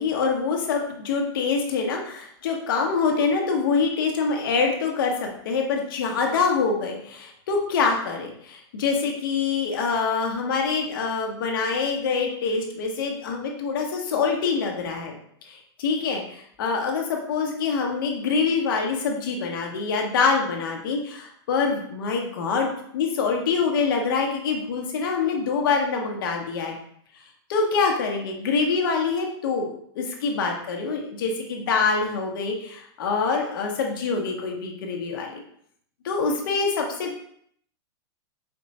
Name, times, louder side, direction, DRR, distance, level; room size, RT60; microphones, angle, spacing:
voice 1, 0.0-15.1 15.4-22.7 22.9-26.8 27.5-35.4 36.0-37.2, left 5 dB, 50° left, 2 dB, 0.9 m, -25 dB
4.4 x 2.3 x 4.0 m, 0.66 s
supercardioid pair, 180°, 14 cm